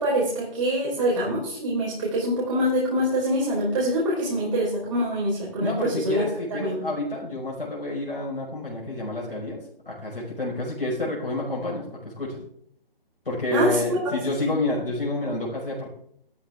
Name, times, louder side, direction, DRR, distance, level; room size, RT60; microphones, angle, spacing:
voice 1, 0.0-6.2 6.6-6.8 13.5-14.5, equal, 35° right, -4 dB, 4.4 m, -25 dB
voice 2, 5.6-12.4 13.3-15.9, left 2 dB, 65° left, -3 dB, 5.2 m, -29 dB
13.0 x 13.0 x 3.6 m, 0.66 s
figure-of-eight pair, 145°, 30 cm